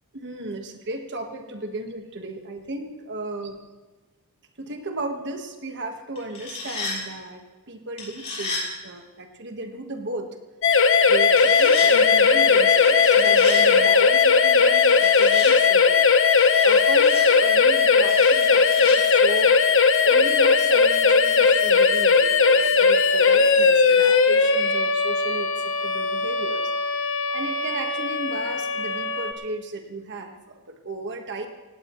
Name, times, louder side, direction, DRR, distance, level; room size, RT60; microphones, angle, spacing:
voice 1, 0.1-3.6 4.6-10.3 11.1-16.1 16.6-25.5 25.8-26.7 27.3-31.5, right 2 dB, 50° right, 5 dB, 1.5 m, -35 dB
sound 1, 6.2-7.0 8.0-8.6 11.3-11.9 12.8-13.6 14.6-15.5 16.4-17.2 18.1-19.0, left 3 dB, 30° left, 5.5 m, -33 dB
sound 2, 10.6-29.3, left 5 dB, 60° left, 1.1 m, -18 dB
sound 3, 11.8-13.9, right 3 dB, 30° right, 0.6 m, -32 dB
18.5 x 16.5 x 3.2 m, 1.2 s
head